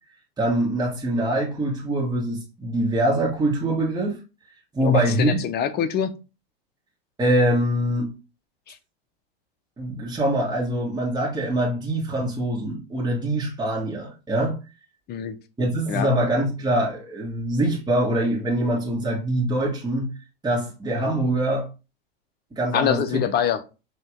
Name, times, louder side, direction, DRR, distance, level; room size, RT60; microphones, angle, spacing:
voice 1, 0.4-4.2 4.7-5.4 7.2-8.1 9.8-14.6 15.6-20.1 20.4-21.7 22.5-23.2, right 1 dB, 15° right, 1.7 m, -24 dB
voice 2, 4.8-6.1 8.7-8.8 15.1-15.3 15.9-16.1 22.7-23.6, left 9 dB, 35° left, 0.7 m, -24 dB
5.1 x 2.9 x 3.6 m
hypercardioid pair, 110°, 30 cm